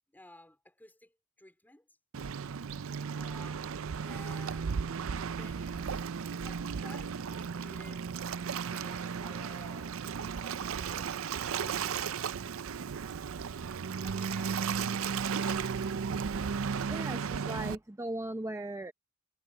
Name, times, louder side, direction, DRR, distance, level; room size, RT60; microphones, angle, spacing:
voice 1, 0.1-1.9 3.2-4.8 5.3-6.0 6.4-8.1 8.6-10.1 10.4-11.2 11.6-12.4 14.0-15.0, left 1 dB, 10° left, 3.6 m, -55 dB
Waves surf, 2.1-17.7, right 6 dB, 70° right, 0.5 m, -35 dB
voice 2, 16.9-18.9, right 1 dB, 15° right, 0.6 m, -38 dB
head